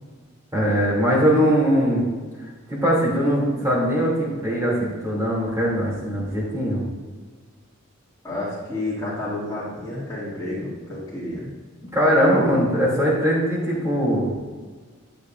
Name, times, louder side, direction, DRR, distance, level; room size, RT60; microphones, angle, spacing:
voice 1, 0.5-2.1 2.4-6.8 11.9-14.3, equal, 15° right, -5 dB, 3.1 m, -21 dB
voice 2, 8.2-11.5, left 2 dB, 15° left, -13 dB, 2.8 m, -30 dB
11.5 x 8.7 x 2.7 m, 1.4 s
head